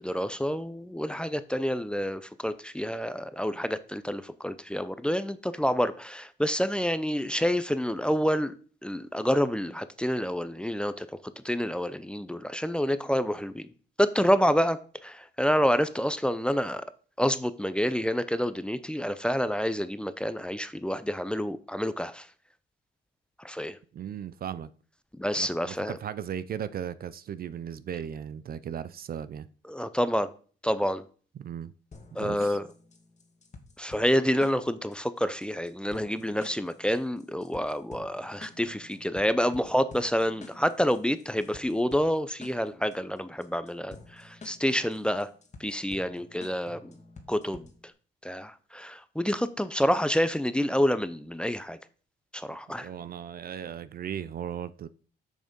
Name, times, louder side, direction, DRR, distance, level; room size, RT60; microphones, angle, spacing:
voice 1, 0.0-8.5 8.8-11.1 11.4-13.7 14.0-16.8 17.2-22.3 23.4-23.8 25.2-25.9 29.7-30.3 30.6-31.0 32.2-32.6 33.8-45.3 45.6-46.9 47.3-47.7 48.2-51.8 52.3-52.9, equal, 5° left, 0.6 m, -28 dB
voice 2, 23.9-24.7 25.3-29.5 31.4-31.7 32.1-32.6 52.8-54.9, right 9 dB, 50° right, 0.5 m, -37 dB
sound 1, 31.9-47.9, left 3 dB, 35° left, 1.5 m, -50 dB
6.5 x 6.4 x 5.2 m
cardioid pair, 90°, 20 cm